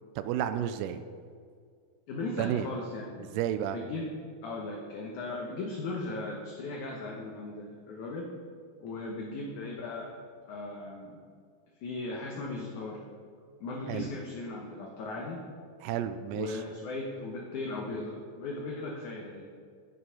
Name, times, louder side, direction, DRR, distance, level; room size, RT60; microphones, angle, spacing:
voice 1, 0.2-1.0 2.4-2.7 3.3-3.8 13.9-14.1 15.8-16.6, right 10 dB, 90° right, 10 dB, 1.9 m, -31 dB
voice 2, 2.1-3.3 3.7-4.2 4.4-8.3 8.8-10.1 10.5-11.2 11.8-13.0 13.6-15.4 16.3-19.5, left 2 dB, 70° left, 0 dB, 2.0 m, -37 dB
15.5 x 5.5 x 5.6 m, 2.1 s
omnidirectional pair, 4.4 m